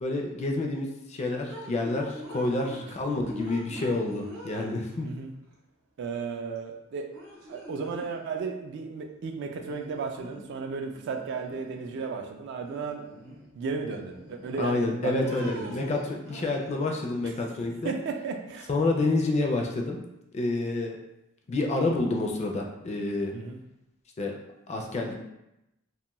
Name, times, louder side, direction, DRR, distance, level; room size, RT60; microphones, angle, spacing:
voice 1, 0.0-5.1 14.6-17.9 18.7-20.0 20.3-21.0 21.5-23.3 24.2-24.3 24.7-25.2, left 2 dB, 30° left, 1 dB, 0.4 m, -28 dB
sound 1, 1.5-2.9 3.2-5.1 6.6-6.7 7.1-8.2 9.6-10.6 10.9-12.1 12.6-13.5 13.9-14.8 15.2-17.0, equal, 85° right, 0.8 m, -43 dB
voice 2, 5.0-5.3 6.0-7.1 7.5-15.9 17.2-17.3 17.8-18.7 23.3-23.6, right 5 dB, 55° right, 4 dB, 0.3 m, -34 dB
2.5 x 2.3 x 2.9 m, 0.89 s
head